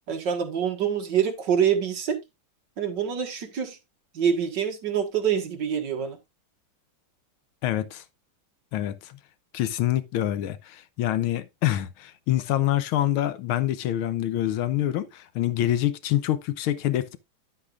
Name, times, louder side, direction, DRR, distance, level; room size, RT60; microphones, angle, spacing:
voice 1, 0.1-2.2 2.8-3.8 4.1-6.2, right 8 dB, 60° right, 2.0 m, -26 dB
voice 2, 7.6-8.0 8.7-9.2 9.5-17.2, left 13 dB, 85° left, 1.6 m, -26 dB
9.9 x 8.6 x 2.4 m
omnidirectional pair, 2.3 m